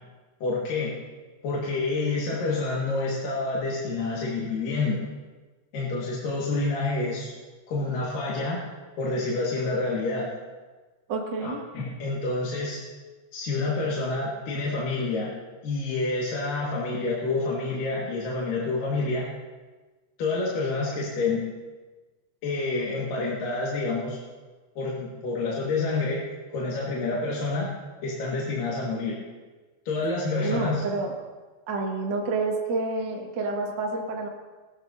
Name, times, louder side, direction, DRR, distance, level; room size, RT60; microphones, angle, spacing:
voice 1, 0.4-0.9 1.4-5.0 5.7-7.3 7.7-8.6 9.0-10.3 11.4-12.8 13.3-15.3 15.6-19.3 20.2-21.5 22.4-24.2 24.8-26.2 26.5-27.7 28.0-29.2 29.9-30.8, left 3 dB, 60° left, -5 dB, 3.0 m, -28 dB
voice 2, 11.1-11.6 30.4-31.1 31.7-34.3, right 3 dB, 75° right, -1 dB, 1.0 m, -28 dB
19.0 x 13.5 x 2.7 m, 1.3 s
omnidirectional pair, 5.1 m